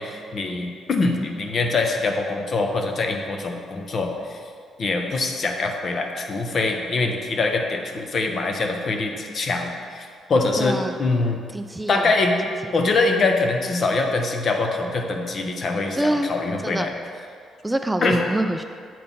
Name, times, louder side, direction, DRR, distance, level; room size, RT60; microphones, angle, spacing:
voice 1, 0.0-4.4 4.8-11.4 11.9-12.4 12.7-16.9 18.0-18.2, left 3 dB, 50° left, 3 dB, 0.9 m, -24 dB
voice 2, 10.6-11.0 11.5-12.1 12.6-12.7 16.0-16.3 16.6-16.9 17.6-18.6, right 1 dB, 10° right, 6 dB, 0.3 m, -25 dB
7.5 x 4.2 x 5.4 m, 2.2 s
cardioid pair, 90°, 0 cm